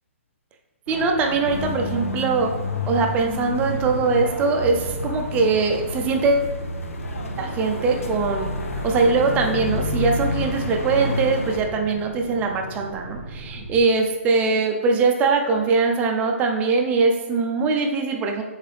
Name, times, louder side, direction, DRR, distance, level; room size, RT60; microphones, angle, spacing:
voice 1, 0.9-2.5 2.9-6.5 7.4-18.4, right 4 dB, 20° right, 2 dB, 0.5 m, -22 dB
sound 1, 0.9-13.8, right 2 dB, 90° right, 0.6 m, -37 dB
sound 2, 1.4-11.6, left 2 dB, 85° left, 0.6 m, -29 dB
3.9 x 3.6 x 3.2 m, 1.1 s
hypercardioid pair, 140°, 7 cm